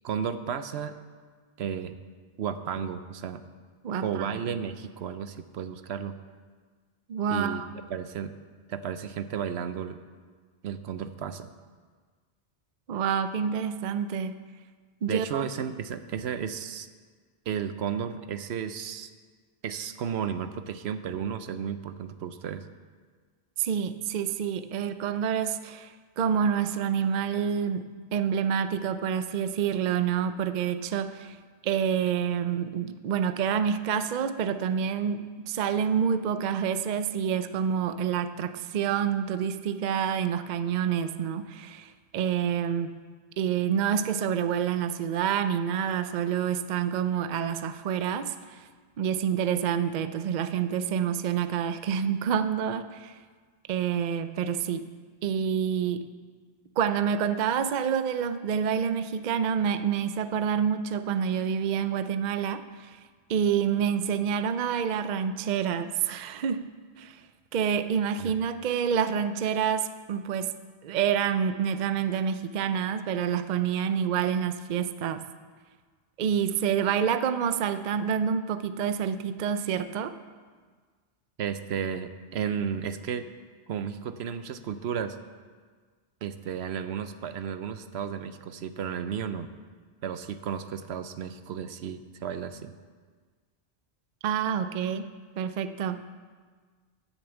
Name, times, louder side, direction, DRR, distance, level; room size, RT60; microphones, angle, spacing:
voice 1, 0.0-0.9 1.6-1.9 2.4-3.4 4.0-6.1 7.3-7.6 7.9-8.3 8.7-10.0 10.6-11.5 15.1-16.9 17.5-19.1 19.6-22.6 68.2-68.3 81.4-83.3 83.7-85.2 86.2-89.5 90.0-92.7, right 8 dB, 80° right, 11 dB, 0.9 m, -33 dB
voice 2, 3.8-4.4 7.1-7.7 12.9-14.3 15.0-15.5 23.6-31.4 31.6-43.0 43.4-48.6 49.0-53.2 53.7-54.9 55.2-56.0 56.8-63.0 63.3-66.7 67.0-67.2 67.5-70.5 70.8-75.3 76.2-80.1 94.2-96.0, right 8 dB, 55° right, 11 dB, 0.6 m, -28 dB
10.5 x 7.1 x 8.0 m, 1.5 s
omnidirectional pair, 1.1 m